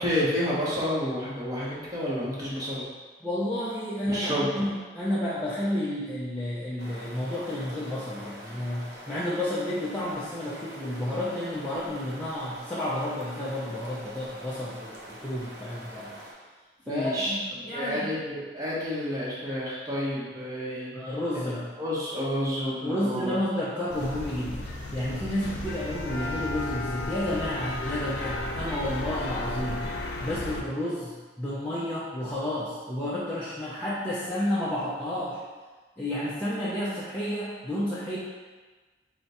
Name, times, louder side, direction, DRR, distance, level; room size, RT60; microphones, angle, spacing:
voice 1, 0.0-2.8 4.1-4.6 16.9-17.3 17.7-21.2 21.8-23.4, equal, 20° right, -7 dB, 0.9 m, -30 dB
voice 2, 3.2-16.1 16.9-17.4 17.6-18.1 20.9-21.6 22.6-29.9 30.2-35.4 36.0-38.2, left 1 dB, 10° left, -11 dB, 0.5 m, -31 dB
sound 1, 6.8-16.3, equal, 65° right, 0.7 m, -45 dB
sound 2, 23.9-30.6, left 2 dB, 75° left, 0.5 m, -34 dB
3.5 x 2.2 x 4.1 m, 1.3 s
head